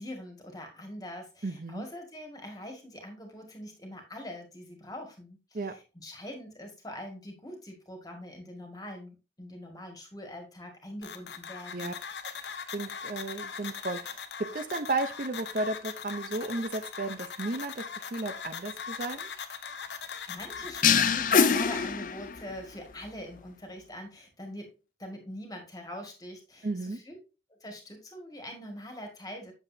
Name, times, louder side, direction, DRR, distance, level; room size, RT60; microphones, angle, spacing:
voice 1, 0.0-12.0 19.9-24.7 25.0-27.2 27.6-29.5, left 1 dB, 20° left, 3 dB, 1.8 m, -43 dB
voice 2, 1.4-1.9 5.5-5.7 11.7-11.9 12.7-19.3 26.6-27.0, right 2 dB, 50° right, 9 dB, 0.6 m, -34 dB
sound 1, 11.0-21.6, left 6 dB, 85° left, 0.8 m, -40 dB
sound 2, 20.8-22.6, left 6 dB, 50° left, 0.5 m, -24 dB
8.0 x 7.0 x 2.7 m, 0.30 s
head